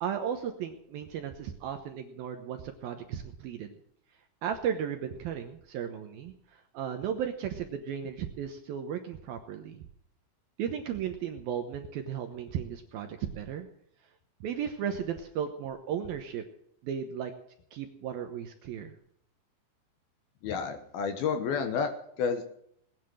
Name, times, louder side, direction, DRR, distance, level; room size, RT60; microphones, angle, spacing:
voice 1, 0.0-3.7 4.4-9.8 10.6-13.7 14.4-16.4 16.8-17.3 17.7-19.0, right 8 dB, 70° right, 6 dB, 2.4 m, -35 dB
voice 2, 20.4-22.4, left 6 dB, 65° left, 7 dB, 2.7 m, -30 dB
19.5 x 10.0 x 6.3 m, 0.70 s
omnidirectional pair, 5.3 m